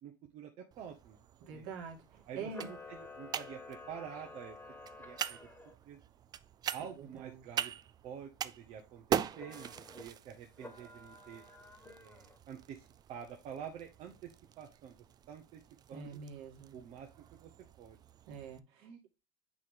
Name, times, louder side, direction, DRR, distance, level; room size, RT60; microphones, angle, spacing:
voice 1, 0.0-1.2 1.5-1.7 2.3-4.6 5.0-5.4 5.8-6.0 6.7-7.7 8.0-11.4 12.0-14.3 14.6-15.0 15.3-15.6 15.9-16.2 16.7-17.1 17.4-17.5 17.8-18.0 18.8-19.0, right 8 dB, 55° right, 2 dB, 1.1 m, -48 dB
sound 1, 0.7-18.6, right 9 dB, 35° right, 0.4 m, -43 dB
voice 2, 1.4-2.0 2.3-2.7 7.0-7.5 15.9-16.8 18.3-18.9, right 5 dB, 75° right, 1 dB, 2.1 m, -45 dB
Camera, 2.4-5.7 9.3-10.0 10.6-12.4, left 3 dB, 15° left, 1.6 m, -51 dB
8.4 x 3.3 x 3.7 m, 0.26 s
supercardioid pair, 110°, 12 cm